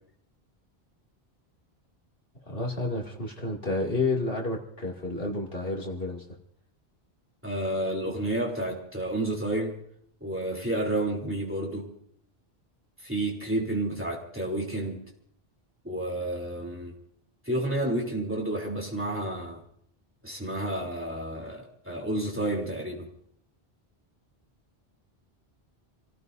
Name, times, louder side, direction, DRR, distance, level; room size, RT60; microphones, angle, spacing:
voice 1, 2.4-6.2, left 2 dB, 60° left, -2 dB, 2.8 m, -30 dB
voice 2, 7.4-9.8 10.2-11.9 13.0-15.0 15.8-16.9 17.4-19.6 20.2-23.1, right 1 dB, 10° right, -2 dB, 3.3 m, -30 dB
28.5 x 17.0 x 2.7 m, 0.67 s
omnidirectional pair, 1.1 m